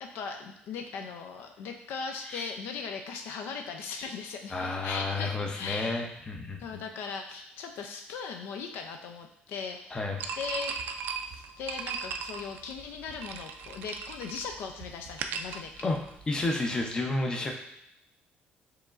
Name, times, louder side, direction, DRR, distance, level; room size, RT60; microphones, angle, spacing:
voice 1, 0.0-6.0 6.6-10.0 10.4-10.8 11.3-15.9, left 5 dB, 75° left, 4 dB, 0.4 m, -38 dB
voice 2, 4.5-6.8 9.9-10.2 15.8-16.0 16.3-17.5, left 2 dB, 20° left, 2 dB, 0.6 m, -31 dB
sound 1, 10.2-16.4, right 6 dB, 65° right, 0.3 m, -38 dB
4.7 x 3.0 x 2.4 m, 0.81 s
cardioid pair, 125°, 4 cm